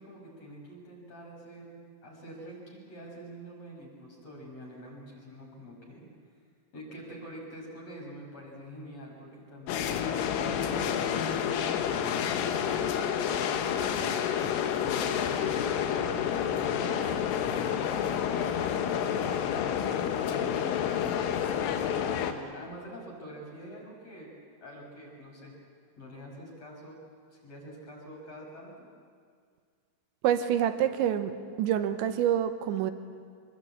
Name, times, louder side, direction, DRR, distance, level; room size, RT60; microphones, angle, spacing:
voice 1, 0.0-6.1 6.7-9.9 10.5-14.5 14.8-24.3 24.6-25.5 26.0-27.0 27.3-28.9, equal, 30° left, -1 dB, 6.8 m, -46 dB
sound 1, 9.7-22.3, left 8 dB, 80° left, 3.8 m, -29 dB
voice 2, 30.2-31.3 31.6-32.9, right 10 dB, 75° right, 9 dB, 3.1 m, -26 dB
26.0 x 22.0 x 8.7 m, 2.1 s
omnidirectional pair, 5.9 m